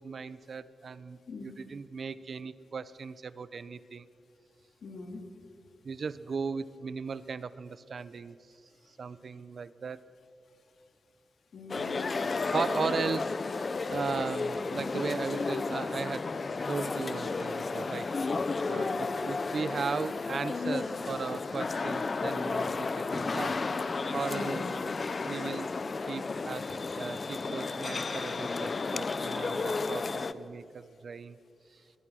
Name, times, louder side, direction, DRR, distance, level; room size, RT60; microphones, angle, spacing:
voice 1, 0.0-4.1 5.8-8.4 9.0-10.0 12.5-16.3 16.7-18.1 18.7-23.6 24.1-24.7 25.3-25.7 26.0-26.7 27.0-31.4 31.7-31.8, right 5 dB, 45° right, 16 dB, 0.6 m, -37 dB
voice 2, 1.3-1.6 4.8-5.3 11.5-12.2 18.7-19.0 24.3-25.0, left 3 dB, 65° left, 5 dB, 2.4 m, -42 dB
sound 1, 11.7-30.3, left 4 dB, 35° left, 0.6 m, -33 dB
23.0 x 20.0 x 6.3 m, 2.5 s
wide cardioid pair, 175°, 0 cm